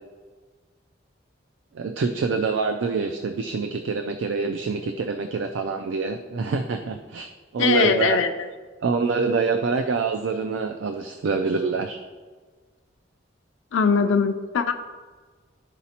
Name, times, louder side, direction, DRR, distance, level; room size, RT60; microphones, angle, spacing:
voice 1, 1.7-7.3 7.5-8.2 8.8-12.0, right 4 dB, 85° right, 6 dB, 0.4 m, -26 dB
voice 2, 7.6-8.5 13.7-14.7, left 5 dB, 90° left, 6 dB, 0.4 m, -21 dB
11.5 x 4.0 x 2.9 m, 1.4 s
head